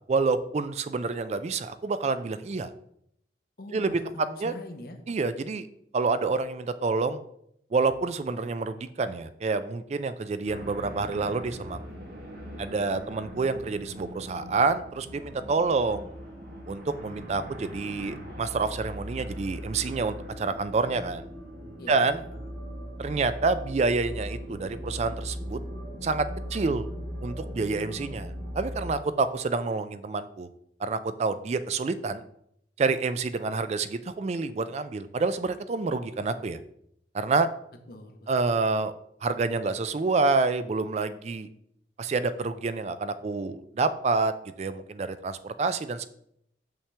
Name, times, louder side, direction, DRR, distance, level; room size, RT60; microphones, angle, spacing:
voice 1, 0.1-2.7 3.7-4.0 4.4-4.5 5.1-5.7 5.9-7.2 7.7-11.8 12.6-16.1 16.7-21.3 21.9-22.2 23.0-25.6 26.0-26.3 26.5-26.9 27.2-30.5 30.8-32.2 32.8-36.6 37.1-37.5 38.3-38.9 39.2-41.5 42.0-44.3 44.6-46.1, right 4 dB, 40° right, 12 dB, 0.3 m, -28 dB
voice 2, 3.6-5.0 21.8-22.5 37.9-38.6, left 1 dB, 55° left, 5 dB, 1.0 m, -44 dB
sound 1, 10.5-28.9, equal, 55° right, 1.4 m, -39 dB
7.0 x 5.7 x 3.3 m, 0.73 s
head